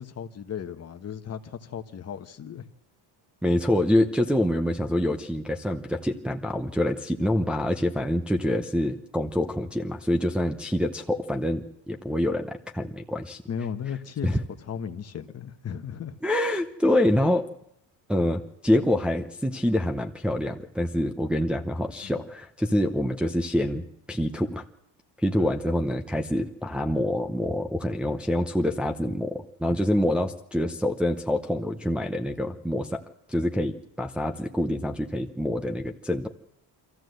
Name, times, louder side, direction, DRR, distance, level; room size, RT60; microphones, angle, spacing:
voice 1, 0.0-2.7 13.5-16.2 22.0-22.2 25.4-25.6, left 7 dB, 35° left, 1.2 m, -36 dB
voice 2, 3.4-13.4 14.2-14.4 16.2-17.5 18.1-23.8 24.1-24.6 25.2-33.0 33.3-36.3, left 1 dB, ahead, 0.7 m, -26 dB
25.5 x 14.5 x 7.9 m
cardioid pair, 165°, 45 cm